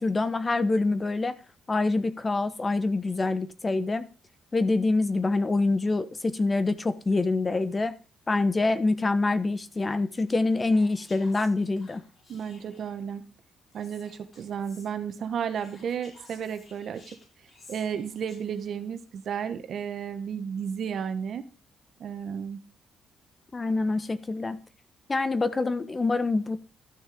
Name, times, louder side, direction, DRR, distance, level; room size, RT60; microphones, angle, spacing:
voice 1, 0.0-1.4 1.7-4.0 4.5-7.9 8.3-12.0 23.5-24.6 25.1-26.6, left 3 dB, 25° left, 1.1 m, -25 dB
Whispering, 10.5-13.0 13.7-14.9 15.5-18.8, left 3 dB, 45° left, 5.9 m, -55 dB
voice 2, 12.3-13.2 13.7-17.2 17.7-21.5 22.0-22.6, right 7 dB, 60° right, 1.5 m, -33 dB
12.5 x 6.5 x 5.1 m
cardioid pair, 90°, 0 cm